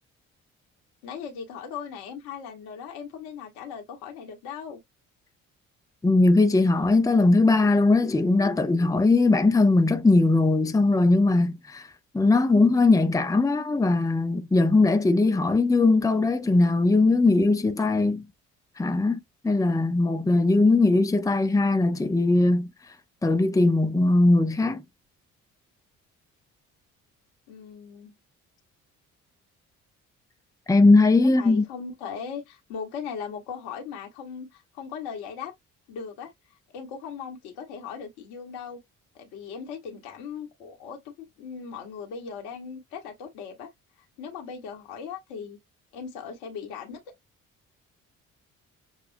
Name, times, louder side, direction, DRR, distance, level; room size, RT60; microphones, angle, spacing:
voice 1, 1.0-4.8 27.5-28.1 31.2-35.5 35.9-36.3 36.7-38.8 39.1-43.7 44.2-45.6 45.9-47.0, left 6 dB, 75° left, 1.4 m, -38 dB
voice 2, 6.0-11.9 12.1-18.2 18.8-22.7 23.2-24.8 30.7-31.6, left 2 dB, 10° left, 0.7 m, -20 dB
6.9 x 2.4 x 2.6 m
hypercardioid pair, 50°, 39 cm